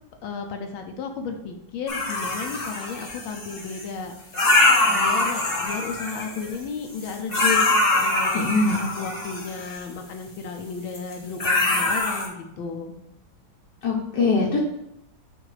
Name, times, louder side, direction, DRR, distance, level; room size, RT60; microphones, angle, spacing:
voice 1, 0.2-4.1 4.8-7.7 7.9-12.9, left 5 dB, 85° left, 4 dB, 1.5 m, -33 dB
sound 1, 1.9-3.8 4.3-6.6 7.0-9.8 10.9-11.1 11.4-12.3, left 2 dB, 35° left, 1.2 m, -23 dB
voice 2, 8.3-8.9 13.8-14.6, left 3 dB, 65° left, -2 dB, 1.4 m, -22 dB
7.5 x 2.6 x 4.8 m, 0.81 s
omnidirectional pair, 2.1 m